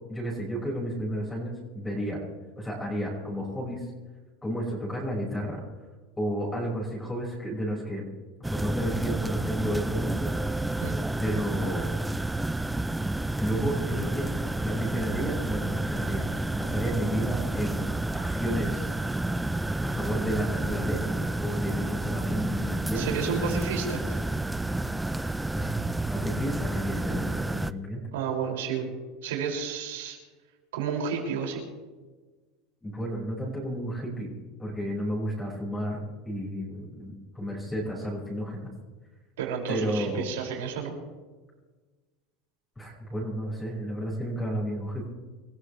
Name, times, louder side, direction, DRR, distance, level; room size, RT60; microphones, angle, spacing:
voice 1, 0.1-2.2 2.6-3.9 4.4-5.6 6.2-8.1 8.5-10.3 11.2-11.9 13.4-14.3 14.6-16.3 16.5-17.8 18.2-18.9 19.8-23.2 25.5-25.8 26.1-28.0 32.8-34.3 34.6-36.0 36.3-38.7 39.7-40.2 42.8-45.1, equal, 10° left, -4 dB, 5.4 m, -32 dB
sound 1, 8.4-27.7, right 2 dB, 5° right, 0.5 m, -30 dB
voice 2, 22.9-24.2 28.1-28.9 29.2-30.2 30.7-31.6 39.4-40.9, right 6 dB, 90° right, 0 dB, 5.8 m, -31 dB
27.0 x 14.5 x 3.3 m, 1.3 s
supercardioid pair, 125°, 0 cm